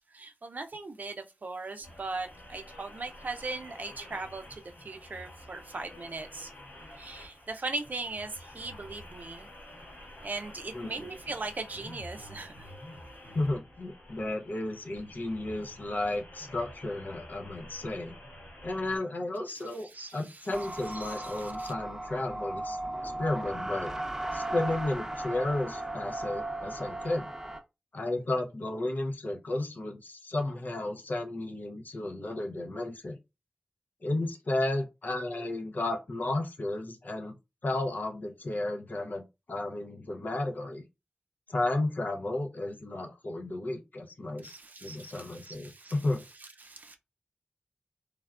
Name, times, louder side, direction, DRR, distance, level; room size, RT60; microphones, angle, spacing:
voice 1, 0.1-6.5 7.0-9.5 10.2-12.7 19.8-20.5 20.8-21.7 44.4-45.9 46.4-47.0, right 3 dB, 60° right, 0.5 m, -39 dB
sound 1, 1.8-19.0, left 1 dB, 85° left, 1.8 m, -49 dB
voice 2, 10.7-11.1 13.3-18.2 18.6-22.8 23.0-23.9 24.3-27.3 27.9-33.2 34.0-37.3 37.6-40.8 41.5-44.5 44.8-46.2, left 2 dB, 65° left, 0.6 m, -33 dB
sound 2, 20.5-27.6, right 1 dB, 15° right, 0.7 m, -36 dB
3.2 x 2.2 x 2.4 m
cardioid pair, 45°, 3 cm